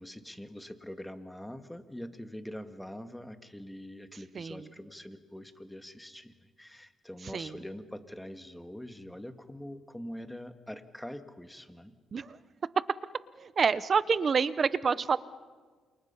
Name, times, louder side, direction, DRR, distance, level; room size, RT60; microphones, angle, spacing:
voice 1, 0.0-12.0, equal, 5° left, 8 dB, 1.8 m, -44 dB
voice 2, 13.4-15.2, right 5 dB, 45° right, 16 dB, 0.8 m, -27 dB
28.5 x 28.0 x 5.7 m, 1.5 s
cardioid pair, 90°, 0 cm